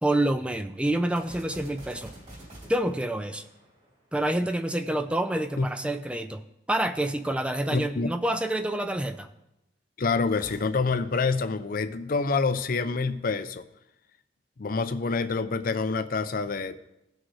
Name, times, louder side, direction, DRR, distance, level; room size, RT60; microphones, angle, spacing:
voice 1, 0.0-2.1 2.7-3.5 4.1-6.4 6.7-9.3, right 1 dB, 5° right, 9 dB, 0.3 m, -27 dB
sound 1, 1.1-4.6 10.3-12.4, right 1 dB, 40° right, 3.2 m, -48 dB
voice 2, 7.7-8.1 10.0-13.6 14.6-16.7, left 4 dB, 50° left, 11 dB, 0.5 m, -27 dB
17.5 x 6.3 x 3.2 m, 0.90 s
head